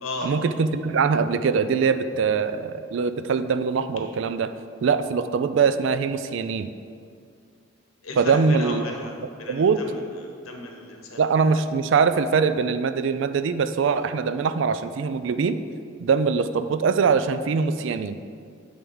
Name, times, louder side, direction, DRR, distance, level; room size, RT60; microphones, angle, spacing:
voice 1, 0.2-4.5 4.8-6.7 8.2-8.8 9.5-9.8 11.2-15.6 16.0-18.2, right 5 dB, 60° right, 11 dB, 0.3 m, -22 dB
voice 2, 8.0-9.1 9.4-10.0 10.4-11.2, left 2 dB, 90° left, 1 dB, 1.1 m, -34 dB
8.7 x 3.5 x 5.5 m, 2.3 s
head